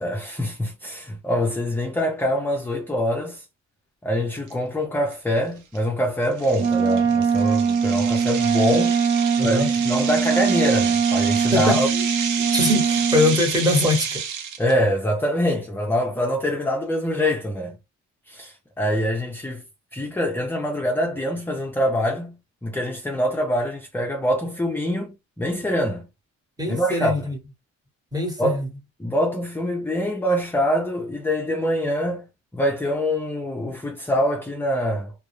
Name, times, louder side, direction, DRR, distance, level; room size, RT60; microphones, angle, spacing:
voice 1, 0.0-3.4 4.0-9.0 9.4-11.9 14.6-17.8 18.3-19.6 19.9-26.1 26.7-27.3 28.4-28.6 29.0-32.3 32.5-35.1, equal, 5° left, 0.4 m, -24 dB
sound 1, 4.5-4.6 5.1-5.3 5.8-5.9 6.4-14.7, right 7 dB, 85° right, 0.6 m, -30 dB
Wind instrument woodwind instrument, 6.6-13.4, right 6 dB, 45° right, 0.7 m, -22 dB
voice 2, 9.4-9.7 11.5-12.0 12.4-14.2 26.6-27.4 28.1-28.7, left 2 dB, 10° right, 1.0 m, -22 dB
2.2 x 2.0 x 3.0 m
cardioid pair, 90°, 30 cm